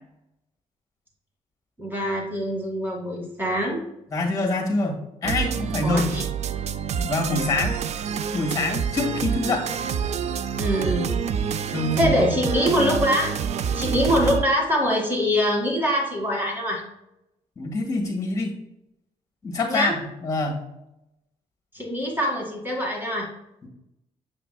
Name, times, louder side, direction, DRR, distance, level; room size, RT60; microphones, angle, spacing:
voice 1, 1.8-3.8 5.8-6.3 10.6-11.1 12.0-13.3 13.8-16.8 19.7-20.0 21.7-23.3, equal, 15° right, -1 dB, 2.1 m, -24 dB
voice 2, 4.1-6.1 7.0-7.8 8.3-9.7 11.7-12.4 17.6-18.5 19.4-20.6 23.6-23.7, left 2 dB, 25° left, 2 dB, 1.8 m, -25 dB
sound 1, 5.2-14.4, right 7 dB, 60° right, 0.4 m, -27 dB
7.4 x 5.9 x 2.3 m, 0.88 s
cardioid pair, 105°, 13 cm